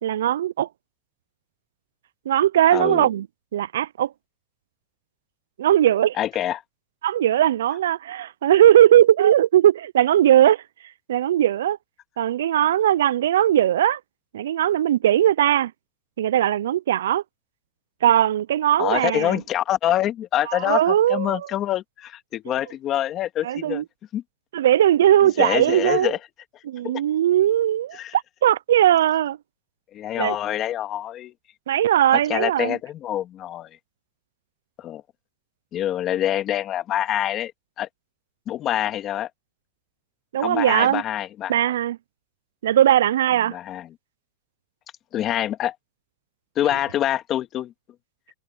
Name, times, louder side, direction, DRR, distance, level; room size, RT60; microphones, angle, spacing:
voice 1, 0.0-0.7 2.3-3.3 3.5-4.1 5.6-6.2 7.0-10.6 11.1-11.8 12.2-14.0 14.3-15.7 16.2-17.2 18.0-19.4 20.5-21.4 23.4-23.8 24.5-26.1 26.7-29.4 30.2-30.4 31.7-32.8 40.3-41.0 41.5-42.0 42.6-43.5, right 11 dB, 90° right, 0.3 m, -19 dB
voice 2, 2.7-3.1 6.2-6.6 18.8-23.8 24.1-24.2 25.4-26.2 26.8-26.9 27.9-28.1 29.9-31.3 32.3-33.7 34.8-35.0 35.7-37.5 37.8-37.9 38.5-39.3 40.4-41.7 43.5-43.9 45.1-45.7 46.6-47.7, left 12 dB, 30° left, 2.2 m, -25 dB
supercardioid pair, 150°, 0 cm